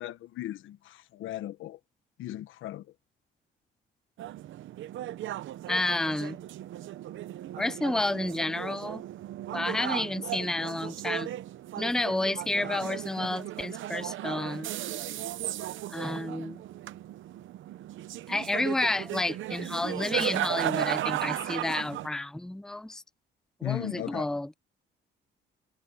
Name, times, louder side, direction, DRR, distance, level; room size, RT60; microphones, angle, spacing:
voice 1, 0.0-1.8 2.2-2.9 23.6-24.3, left 14 dB, 85° left, 1.2 m, -36 dB
sound 1, 4.2-22.1, right 13 dB, 75° right, 0.9 m, -36 dB
voice 2, 5.7-6.4 7.6-9.0 9.5-11.3 11.8-14.8 15.9-16.6 18.3-23.0 23.6-24.5, left 2 dB, 5° left, 0.5 m, -30 dB
cardioid pair, 90°, 20 cm